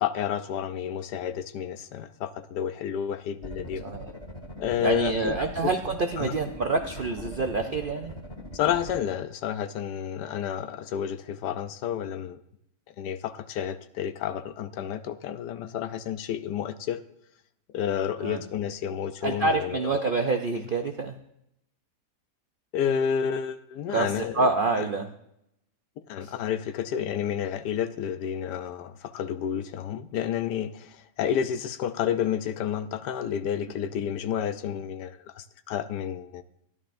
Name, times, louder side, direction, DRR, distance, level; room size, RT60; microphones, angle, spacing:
voice 1, 0.0-3.9 4.6-5.7 6.2-6.3 8.5-12.4 13.0-17.0 17.7-20.0 22.7-24.4 24.8-24.9 26.1-36.4, left 9 dB, 85° left, 11 dB, 1.2 m, -30 dB
sound 1, 3.4-9.0, left 1 dB, 15° left, 2.0 m, -41 dB
voice 2, 4.8-8.1 18.2-18.4 19.2-21.2 23.9-25.1 26.2-26.3, right 3 dB, 80° right, 5 dB, 0.4 m, -27 dB
14.5 x 11.0 x 2.6 m, 0.79 s
omnidirectional pair, 1.8 m